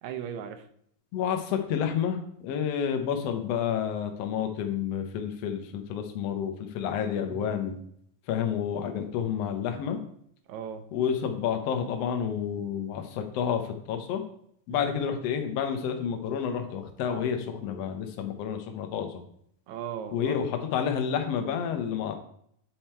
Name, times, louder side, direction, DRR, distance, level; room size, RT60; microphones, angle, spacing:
voice 1, 0.0-0.6 7.3-7.5 10.5-10.8 14.7-14.9 19.7-20.4, right 9 dB, 80° right, 7 dB, 1.7 m, -37 dB
voice 2, 1.1-7.8 8.3-10.0 10.9-14.2 14.7-19.2 20.1-22.2, left 8 dB, 85° left, 5 dB, 1.4 m, -30 dB
8.6 x 4.4 x 4.4 m, 0.67 s
omnidirectional pair, 4.0 m